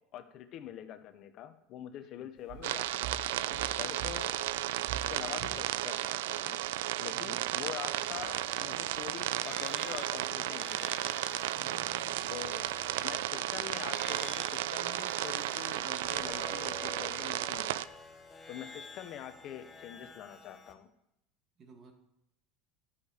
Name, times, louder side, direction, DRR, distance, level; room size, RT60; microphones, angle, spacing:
voice 1, 0.1-4.4 4.9-6.6 7.0-11.0 12.3-12.7 13.0-17.9 18.5-20.9, left 11 dB, 50° left, 10 dB, 0.8 m, -45 dB
voice 2, 2.0-2.3 7.1-7.7 11.5-12.4 21.6-21.9, right 4 dB, 35° right, 3 dB, 2.1 m, -56 dB
sound 1, 2.4-18.2, right 8 dB, 65° right, 1.1 m, -52 dB
sound 2, 2.6-17.9, right 14 dB, 85° right, 0.3 m, -34 dB
sound 3, 7.9-20.7, left 3 dB, 15° left, 1.1 m, -49 dB
11.0 x 6.7 x 5.1 m, 0.81 s
supercardioid pair, 115°, 0 cm